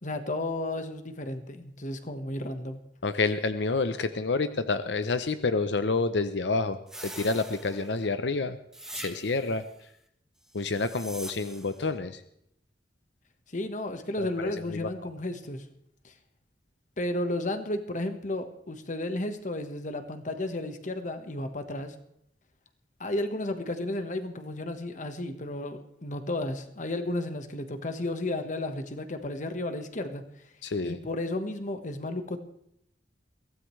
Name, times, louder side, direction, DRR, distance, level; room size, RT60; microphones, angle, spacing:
voice 1, 0.0-2.8 13.5-15.6 16.0-16.1 17.0-21.9 23.0-30.2 30.8-32.4, left 1 dB, 45° left, 8 dB, 1.3 m, -33 dB
voice 2, 3.0-8.6 8.9-9.7 10.5-12.2 14.2-14.9 30.6-31.0, left 3 dB, 90° left, 11 dB, 0.7 m, -29 dB
sound 1, 6.9-8.1 8.7-9.6 10.6-11.8, right 1 dB, 5° right, 1.1 m, -43 dB
22.5 x 16.0 x 3.2 m, 0.74 s
head